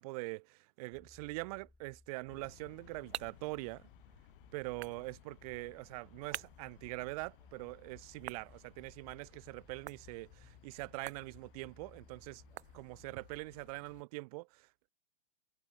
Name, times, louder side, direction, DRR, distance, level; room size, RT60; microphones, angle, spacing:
voice 1, 0.0-3.9 4.5-12.4 12.7-14.9, right 24 dB, 35° right, 0.6 m, -43 dB
sound 1, 0.9-13.5, left 2 dB, 5° left, 1.3 m, -63 dB
sound 2, 2.3-14.0, left 15 dB, 50° left, 0.7 m, -61 dB
sound 3, 2.4-13.3, right 11 dB, 70° right, 0.7 m, -52 dB
hypercardioid pair, 120°, 34 cm